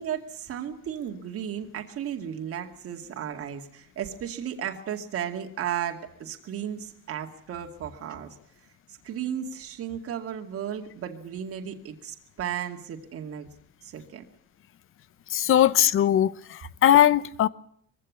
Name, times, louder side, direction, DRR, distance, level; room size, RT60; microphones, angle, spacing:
voice 1, 0.0-8.3 8.9-13.5 13.8-14.2, right 9 dB, 45° right, 2.4 m, -34 dB
voice 2, 15.3-17.5, left 11 dB, 40° left, 0.8 m, -20 dB
22.5 x 16.0 x 9.7 m
cardioid pair, 145°, 32 cm